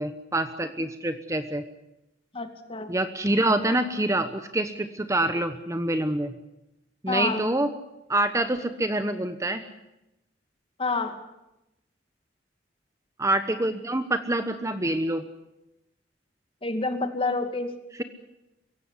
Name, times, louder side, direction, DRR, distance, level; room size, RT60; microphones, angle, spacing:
voice 1, 0.0-1.6 2.9-6.3 7.0-7.7 8.1-9.6 13.2-15.2, right 1 dB, 15° right, 9 dB, 1.1 m, -26 dB
voice 2, 2.3-2.9 7.1-7.5 10.8-11.2 16.6-17.7, left 3 dB, 30° left, 7 dB, 2.4 m, -28 dB
23.0 x 16.5 x 9.9 m, 0.90 s
head